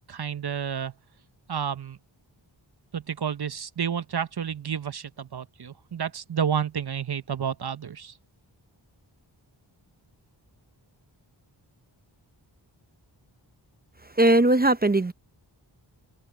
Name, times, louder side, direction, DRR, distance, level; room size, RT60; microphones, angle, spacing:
voice 1, 0.1-0.9 1.5-2.0 2.9-8.1, right 7 dB, 55° right, 0.9 m, -30 dB
voice 2, 14.1-15.1, right 2 dB, 20° right, 0.6 m, -19 dB
wide cardioid pair, 80°, 46 cm